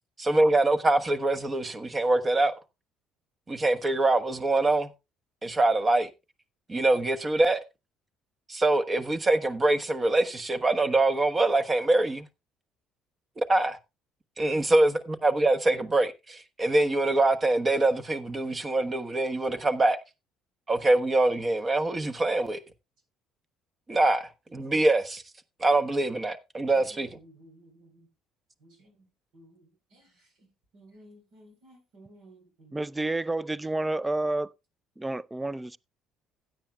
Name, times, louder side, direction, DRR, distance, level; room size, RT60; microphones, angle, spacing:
voice 1, 0.2-2.5 3.5-4.9 5.4-6.1 6.7-7.6 8.5-12.3 13.4-13.8 14.4-20.0 20.7-22.6 23.9-25.2 25.6-27.1, right 2 dB, 30° right, 1.2 m, -24 dB
voice 2, 26.7-28.1 28.6-29.0 29.3-32.8, right 1 dB, 65° right, 4.1 m, -55 dB
voice 3, 32.7-34.5 35.0-35.8, right 2 dB, 15° right, 0.5 m, -29 dB
16.0 x 9.1 x 2.3 m
hypercardioid pair, 55°, 0 cm